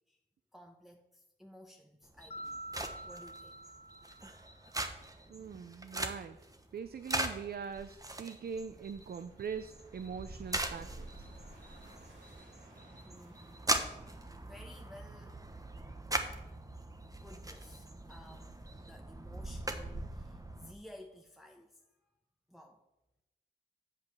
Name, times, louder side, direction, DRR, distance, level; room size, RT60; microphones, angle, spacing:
voice 1, 0.5-2.6 3.0-3.6 11.8-15.5 17.2-21.8 22.5-22.8, left 1 dB, ahead, 2 dB, 0.9 m, -56 dB
sound 1, 2.0-20.7, right 1 dB, 20° right, 1.1 m, -41 dB
Mallet percussion, 2.3-4.7, right 1 dB, 35° left, 0.8 m, -47 dB
voice 2, 5.3-6.4 6.7-11.3, right 6 dB, 55° right, 10 dB, 0.5 m, -42 dB
sound 2, 9.3-15.0, right 1 dB, 75° right, 2.6 m, -61 dB
8.3 x 4.9 x 7.0 m, 0.95 s
cardioid pair, 60°, 19 cm